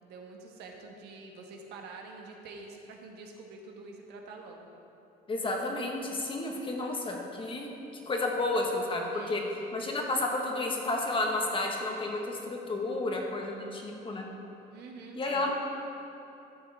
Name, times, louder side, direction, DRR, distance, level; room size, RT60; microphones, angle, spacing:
voice 1, 0.0-4.7 9.1-9.9 14.7-15.5, right 3 dB, 80° right, 1 dB, 1.3 m, -47 dB
voice 2, 5.3-7.7 8.1-9.4 9.7-14.2 15.1-15.5, left 2 dB, 30° left, 1 dB, 1.4 m, -31 dB
13.0 x 7.5 x 3.5 m, 2.8 s
cardioid pair, 110°, 17 cm